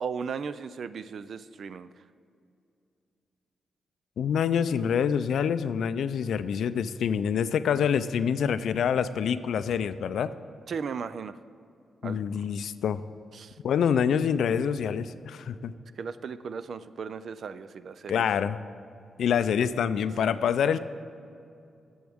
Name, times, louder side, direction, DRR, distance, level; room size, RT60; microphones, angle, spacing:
voice 1, 0.0-1.9 10.7-11.3 12.0-12.5 13.3-13.5 16.0-18.2 20.2-20.4, right 6 dB, 55° right, 14 dB, 0.3 m, -36 dB
voice 2, 4.2-10.3 12.0-13.0 13.6-15.7 18.1-18.6 19.2-20.8, left 7 dB, 80° left, 13 dB, 0.4 m, -26 dB
17.5 x 7.0 x 3.5 m, 2.5 s
wide cardioid pair, 150°, 0 cm